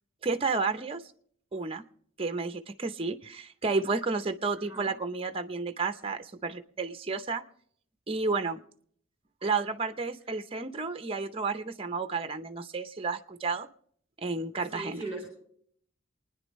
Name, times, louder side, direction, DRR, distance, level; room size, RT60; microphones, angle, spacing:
voice 1, 0.2-1.0 1.5-1.8 2.2-7.4 8.1-8.6 9.4-13.7 14.2-15.0, right 4 dB, 30° right, 9 dB, 0.7 m, -31 dB
voice 2, 14.7-15.3, right 2 dB, 10° right, 0 dB, 3.9 m, -38 dB
28.0 x 10.0 x 3.1 m, 0.62 s
head